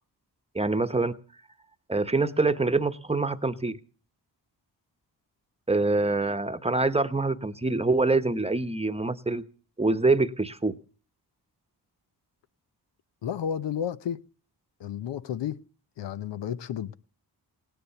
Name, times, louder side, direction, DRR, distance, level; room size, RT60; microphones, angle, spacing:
voice 1, 0.5-1.2 1.9-3.8 5.7-9.4 9.8-10.7, right 3 dB, 15° right, 0.9 m, -25 dB
voice 2, 13.2-14.2 14.8-15.6 16.0-16.9, left 9 dB, 90° left, 0.8 m, -32 dB
17.5 x 10.0 x 6.8 m
cardioid pair, 75°, 42 cm